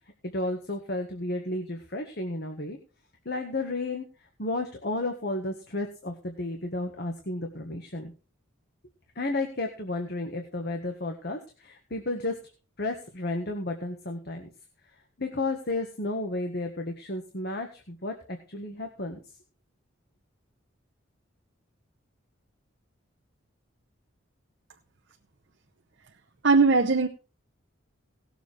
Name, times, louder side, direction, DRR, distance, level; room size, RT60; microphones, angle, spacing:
voice 1, 0.2-2.8 3.2-4.0 4.4-8.1 9.1-12.4 12.8-14.5 15.2-19.2, left 2 dB, 50° left, 4 dB, 1.6 m, -32 dB
voice 2, 26.4-27.1, right 4 dB, 55° right, 4 dB, 0.9 m, -19 dB
18.0 x 7.3 x 4.6 m, 0.34 s
head